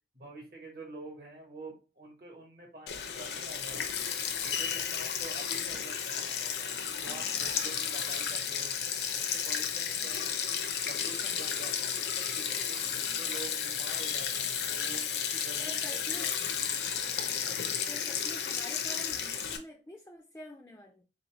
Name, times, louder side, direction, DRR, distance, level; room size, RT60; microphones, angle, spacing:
voice 1, 0.1-4.1 4.4-8.8 9.1-10.6 10.9-16.6, right 2 dB, 55° right, 0 dB, 1.0 m, -48 dB
Sink (filling or washing), 2.9-19.6, left 8 dB, 70° left, 0.5 m, -33 dB
voice 2, 15.6-16.4 17.8-21.0, left 1 dB, 15° left, 2 dB, 0.3 m, -47 dB
3.8 x 2.7 x 2.9 m, 0.33 s
head